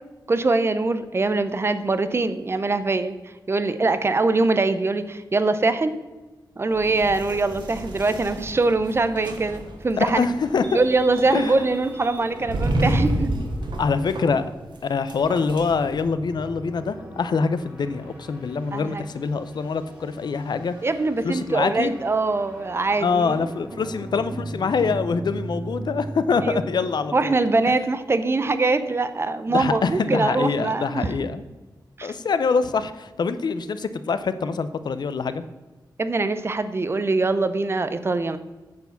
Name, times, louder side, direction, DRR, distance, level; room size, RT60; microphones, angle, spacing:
voice 1, 0.3-5.9 6.6-10.3 10.7-13.3 18.7-19.1 20.8-23.5 26.4-26.6 27.1-31.2 32.0-32.1 36.0-38.4, right 3 dB, 35° right, 12 dB, 0.6 m, -23 dB
sound 1, 6.7-16.0, right 1 dB, 85° right, 1.5 m, -30 dB
sound 2, 9.9-27.6, right 1 dB, 15° right, 2.4 m, -40 dB
voice 2, 10.1-10.8 11.3-11.6 13.8-14.4 14.8-20.7 21.2-21.9 23.0-27.3 29.5-31.4 32.0-35.4, left 5 dB, 70° left, 12 dB, 0.6 m, -24 dB
9.3 x 4.7 x 7.1 m, 1.2 s
wide cardioid pair, 150°, 8 cm